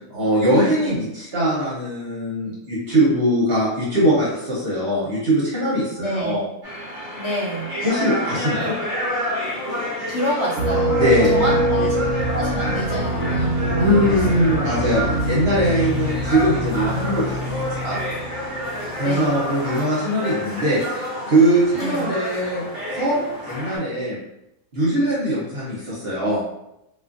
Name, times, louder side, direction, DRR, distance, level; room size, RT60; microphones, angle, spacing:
voice 1, 0.1-6.4 7.8-8.7 10.9-11.3 13.8-18.0 19.0-22.6 23.0-24.2 24.7-26.4, equal, 50° right, -7 dB, 1.0 m, -21 dB
voice 2, 5.9-6.4 7.2-7.7 10.1-11.0 11.2-12.0 12.3-14.6 19.0-19.4 21.8-22.1, right 1 dB, 60° left, -6 dB, 1.0 m, -28 dB
sound 1, 6.6-23.8, left 1 dB, 25° right, 0.5 m, -29 dB
sound 2, 10.6-19.2, right 1 dB, 75° right, 1.0 m, -24 dB
2.6 x 2.4 x 2.5 m, 0.85 s
omnidirectional pair, 1.6 m